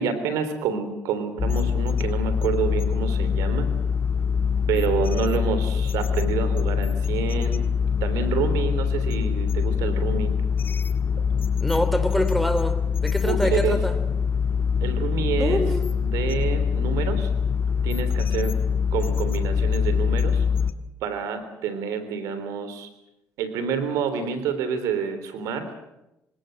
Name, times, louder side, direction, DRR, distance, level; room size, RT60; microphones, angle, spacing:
voice 1, 0.0-3.7 4.7-7.6 8.0-10.3 13.2-13.7 14.8-15.6 16.0-17.3 17.8-18.6 18.9-20.4 21.0-22.9 23.4-25.7, right 6 dB, 85° right, 11 dB, 3.5 m, -28 dB
sound 1, 1.4-20.7, left 6 dB, 40° left, 1.6 m, -24 dB
voice 2, 11.6-13.9 15.4-15.9, equal, ahead, 9 dB, 3.6 m, -25 dB
26.0 x 17.5 x 7.8 m, 0.91 s
supercardioid pair, 80°, 6 cm